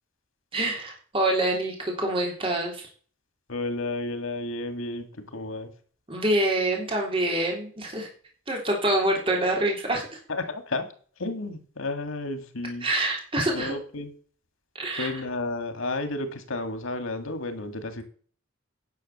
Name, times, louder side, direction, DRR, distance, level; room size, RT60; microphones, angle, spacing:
voice 1, 0.5-2.9 6.1-8.1 8.5-10.2 12.8-13.7 14.7-15.1, right 1 dB, 25° right, 0 dB, 3.4 m, -26 dB
voice 2, 3.5-5.7 10.3-10.9 11.2-12.9 13.5-14.1 15.0-18.0, left 2 dB, 90° left, 8 dB, 2.0 m, -32 dB
10.5 x 6.5 x 6.6 m, 0.43 s
head